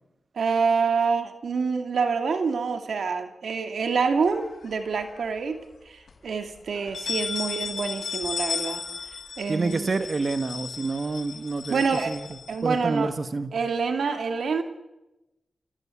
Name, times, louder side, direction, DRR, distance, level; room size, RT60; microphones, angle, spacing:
voice 1, 0.4-5.6 5.9-8.8 9.4-9.9 11.7-12.1 12.5-13.1 13.5-14.6, right 5 dB, 80° right, 7 dB, 2.4 m, -26 dB
sound 1, 4.3-5.2 5.6-5.7 6.1-6.2 6.7-13.0, left 5 dB, 80° left, 6.4 m, -35 dB
voice 2, 9.5-12.3 12.6-13.5, right 3 dB, 55° right, 10 dB, 1.7 m, -28 dB
29.5 x 16.5 x 8.6 m, 1.0 s
cardioid pair, 50°, 0 cm